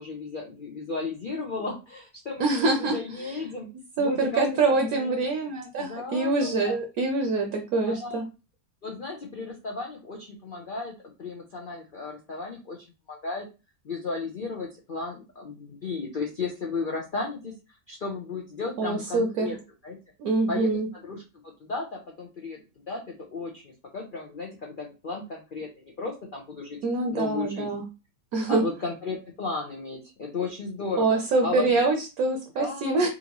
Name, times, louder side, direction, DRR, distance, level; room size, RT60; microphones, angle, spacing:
voice 1, 0.0-3.7 4.0-4.4 4.8-5.1 5.8-6.8 7.9-8.2 8.8-10.9 11.2-12.8 13.1-13.5 13.8-17.5 17.9-19.6 19.8-20.0 20.5-21.2 21.6-22.6 22.9-26.8 27.1-27.7 28.5-31.7 32.6-33.1, left 3 dB, 85° left, -1 dB, 0.4 m, -34 dB
voice 2, 2.4-3.4 4.0-8.2 18.8-19.5 20.2-20.9 26.8-27.8 28.3-28.6 31.0-33.1, right 3 dB, 65° right, 3 dB, 1.1 m, -25 dB
3.9 x 2.5 x 2.9 m, 0.29 s
omnidirectional pair, 1.8 m